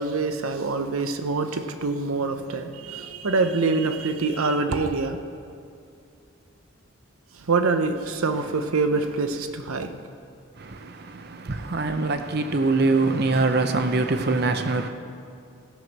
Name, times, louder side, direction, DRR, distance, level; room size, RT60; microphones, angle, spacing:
voice 1, 0.0-5.2 7.4-9.9, right 3 dB, 90° right, 0.7 m, -25 dB
voice 2, 10.6-14.9, right 3 dB, 50° right, 0.7 m, -24 dB
16.0 x 6.2 x 6.1 m
head